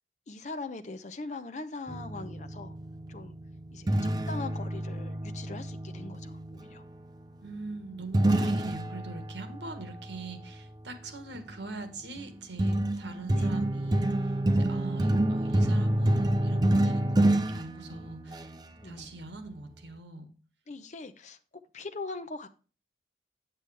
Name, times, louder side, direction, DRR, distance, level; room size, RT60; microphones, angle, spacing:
voice 1, 0.3-2.8 3.1-3.4 3.7-6.8 13.3-13.5 18.8-19.1 20.7-21.4 21.7-22.5, left 3 dB, 40° left, 9 dB, 0.7 m, -41 dB
sound 1, 1.9-6.6 8.1-10.3 11.3-11.7 12.2-18.6, right 1 dB, 25° right, 0.5 m, -28 dB
voice 2, 7.3-18.5 18.8-20.3, right 3 dB, 85° right, 8 dB, 1.4 m, -42 dB
8.0 x 7.6 x 3.3 m, 0.35 s
head